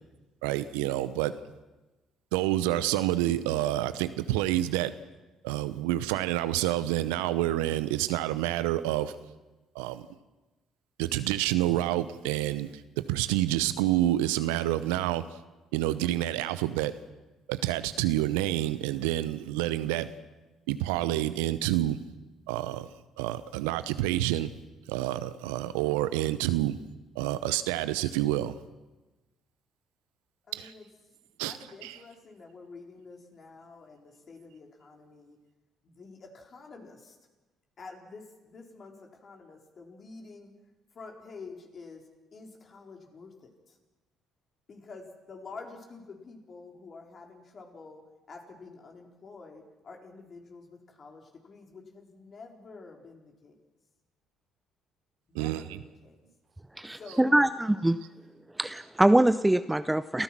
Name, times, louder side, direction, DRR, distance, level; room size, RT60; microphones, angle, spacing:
voice 1, 0.4-1.3 2.3-4.9 5.4-9.1 9.7-10.0 11.0-12.7 13.0-15.2 15.7-16.9 17.5-20.1 20.7-22.0 22.5-22.9 23.2-24.5 24.9-26.8 27.2-28.5 30.5-30.7 31.4-31.5 31.8-32.0 55.3-55.8, right 14 dB, 80° right, 14 dB, 0.8 m, -28 dB
voice 2, 30.5-30.9 31.4-35.4 35.8-37.2 37.8-40.5 40.9-42.1 42.3-43.8 44.7-48.0 48.3-53.6 55.3-56.2 56.9-57.4, left 4 dB, 45° left, 2 dB, 4.2 m, -48 dB
voice 3, 56.8-58.0 58.6-60.2, right 1 dB, 10° right, 13 dB, 0.7 m, -23 dB
29.0 x 14.5 x 6.1 m, 1.1 s
hypercardioid pair, 50°, 0 cm